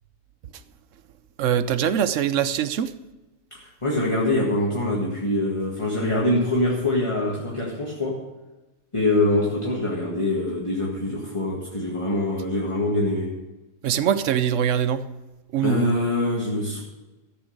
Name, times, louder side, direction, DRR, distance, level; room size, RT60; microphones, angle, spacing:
voice 1, 1.4-2.9 13.8-15.0 15.5-15.9, right 9 dB, 60° right, 13 dB, 0.9 m, -22 dB
voice 2, 3.5-8.2 8.9-13.4 15.6-16.8, left 2 dB, 20° left, -3 dB, 1.7 m, -24 dB
13.5 x 7.1 x 6.4 m, 1.1 s
omnidirectional pair, 1.7 m